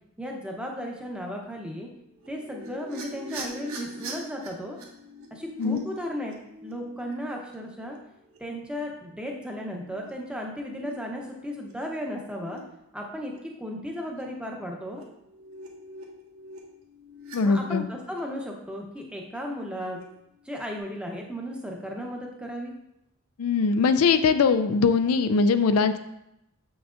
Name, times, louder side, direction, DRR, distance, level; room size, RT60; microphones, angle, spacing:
voice 1, 0.2-1.9 2.3-4.8 5.3-6.4 6.6-8.0 8.4-12.6 12.9-13.3 13.6-15.0 17.4-20.0 20.4-22.7, equal, 5° right, 0 dB, 0.7 m, -35 dB
sound 1, 2.0-8.4 9.1-9.3 9.6-10.1 10.6-11.7 12.1-12.6 13.0-13.4 14.1-14.2 14.6-17.4 17.8-18.2 19.6-20.0 20.4-20.8, right 1 dB, 65° right, 1.1 m, -44 dB
voice 2, 17.3-17.8 23.4-26.0, left 5 dB, 75° left, 10 dB, 0.4 m, -21 dB
7.3 x 6.0 x 2.5 m, 0.83 s
head